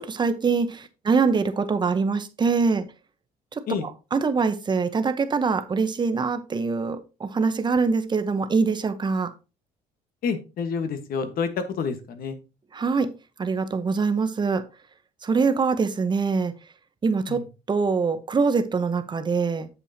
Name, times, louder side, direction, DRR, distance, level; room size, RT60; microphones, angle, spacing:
voice 1, 0.0-2.9 4.1-9.3 12.7-13.1 13.4-14.6 15.2-16.5 17.0-19.7, right 4 dB, 25° right, 10 dB, 0.9 m, -24 dB
voice 2, 10.2-12.4 17.3-17.4, left 5 dB, 60° left, 9 dB, 1.4 m, -28 dB
8.5 x 7.0 x 2.8 m, 0.30 s
cardioid pair, 110°, 17 cm